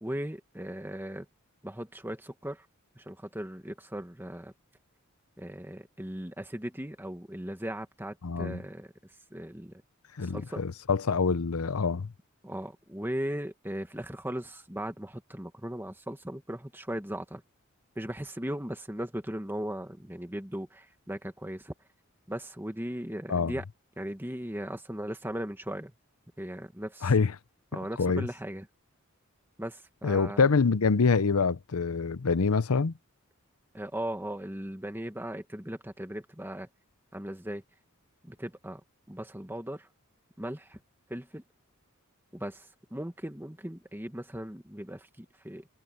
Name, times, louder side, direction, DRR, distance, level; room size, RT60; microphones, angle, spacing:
voice 1, 0.0-1.3 1.6-2.7 3.0-4.5 5.4-9.8 10.2-10.6 12.4-17.4 18.0-21.7 22.3-23.6 24.0-25.9 26.4-27.1 27.7-28.7 29.6-30.5 33.7-36.7 37.1-37.6 38.2-38.8 39.1-39.9 40.4-40.8 41.1-41.4 42.3-45.7, right 1 dB, 10° right, 1.8 m, -38 dB
voice 2, 8.2-8.6 10.2-12.1 23.3-23.5 27.0-27.3 28.0-28.3 30.0-32.9, left 4 dB, 85° left, 0.7 m, -25 dB
head